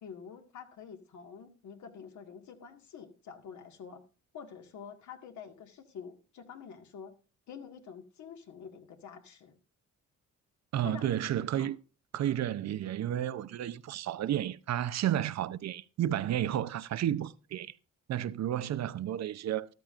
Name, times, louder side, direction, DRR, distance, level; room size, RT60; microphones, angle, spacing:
voice 1, 0.0-4.0 4.3-7.1 7.5-9.6 10.8-11.7, left 7 dB, 70° left, 2.0 m, -47 dB
voice 2, 10.7-11.8 12.1-17.7 18.1-19.7, right 11 dB, 60° right, 0.7 m, -32 dB
13.5 x 13.0 x 2.6 m
cardioid pair, 90°, 30 cm